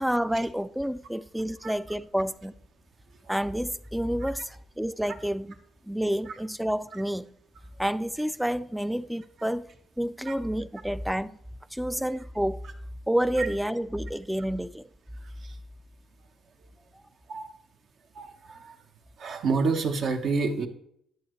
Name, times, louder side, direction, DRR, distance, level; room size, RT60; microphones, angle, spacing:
voice 1, 0.0-2.5 3.3-5.6 5.9-7.3 7.8-9.7 10.0-11.4 11.7-12.6 13.1-14.9, equal, 5° right, 0.4 m, -29 dB
voice 2, 18.1-18.8 19.2-20.7, right 4 dB, 65° right, 1.2 m, -28 dB
11.0 x 7.9 x 3.2 m
cardioid pair, 90°, 0 cm